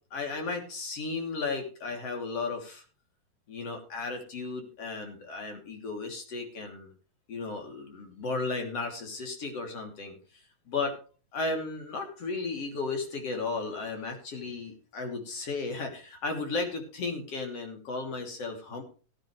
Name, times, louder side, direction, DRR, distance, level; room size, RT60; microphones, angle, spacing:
voice 1, 0.1-2.8 3.5-6.9 7.3-10.4 10.7-10.9 11.3-18.8, left 3 dB, 50° left, 2 dB, 4.1 m, -34 dB
17.5 x 10.5 x 3.3 m, 0.37 s
omnidirectional pair, 3.5 m